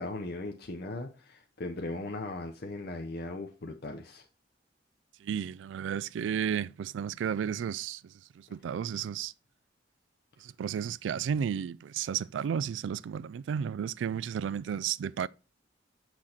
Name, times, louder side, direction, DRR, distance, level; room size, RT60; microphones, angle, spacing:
voice 1, 0.0-4.3, left 2 dB, 60° left, 0.7 m, -38 dB
voice 2, 5.2-8.0 8.5-9.3 10.4-15.3, right 8 dB, 90° right, 0.3 m, -33 dB
6.5 x 6.1 x 4.3 m
head